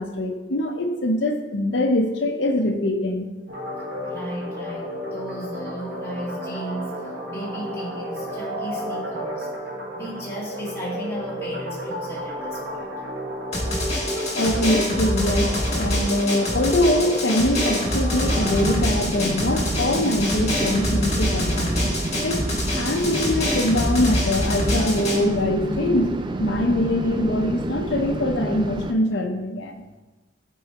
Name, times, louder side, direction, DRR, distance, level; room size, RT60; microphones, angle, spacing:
voice 1, 0.0-3.3 14.3-21.8 22.2-22.5 22.7-29.8, left 1 dB, 65° left, 4 dB, 0.8 m, -23 dB
sound 1, 3.5-18.8, equal, 50° right, 1.4 m, -32 dB
voice 2, 4.0-7.0 7.3-9.5 9.9-12.9, equal, 15° left, -7 dB, 1.9 m, -35 dB
Drum, 13.5-25.2, left 1 dB, 35° left, 1.7 m, -25 dB
sound 2, 18.2-28.9, right 2 dB, 25° right, 0.3 m, -29 dB
8.9 x 4.7 x 2.9 m, 1.1 s
head